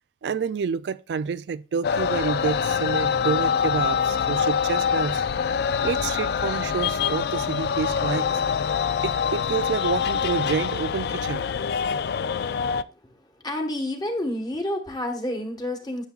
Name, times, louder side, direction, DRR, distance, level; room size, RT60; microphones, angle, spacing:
voice 1, 0.2-5.2 5.8-8.3 9.0-11.4, right 6 dB, 70° right, 0.3 m, -28 dB
sound 1, 1.8-12.8, left 7 dB, 60° left, 0.3 m, -25 dB
voice 2, 13.4-16.1, left 1 dB, 25° left, 1.4 m, -29 dB
10.5 x 7.1 x 2.4 m
head